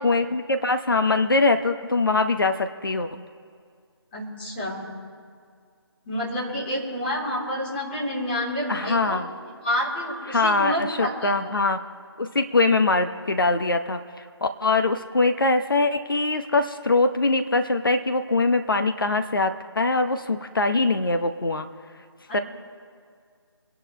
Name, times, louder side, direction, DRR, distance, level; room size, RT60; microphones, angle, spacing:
voice 1, 0.0-3.2 8.7-9.3 10.3-11.8 12.2-21.7 22.3-22.4, left 3 dB, 55° left, 7 dB, 0.9 m, -23 dB
voice 2, 4.1-4.9 6.0-9.2 9.6-11.5 22.3-22.4, equal, 25° left, -6 dB, 3.4 m, -29 dB
25.5 x 11.0 x 3.2 m, 2.1 s
figure-of-eight pair, 160°, 14 cm